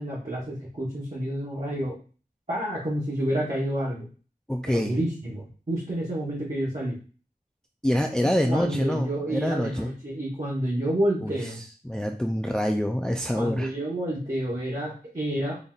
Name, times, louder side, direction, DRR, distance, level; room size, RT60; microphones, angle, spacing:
voice 1, 0.0-1.9 2.5-4.1 4.7-7.0 8.2-11.6 13.3-15.6, right 1 dB, 45° right, -6 dB, 1.0 m, -29 dB
voice 2, 4.5-4.9 7.8-9.9 11.2-11.3 11.8-13.7, equal, 5° left, 4 dB, 0.3 m, -26 dB
3.9 x 3.5 x 2.3 m, 0.39 s
wide cardioid pair, 40°, 17 cm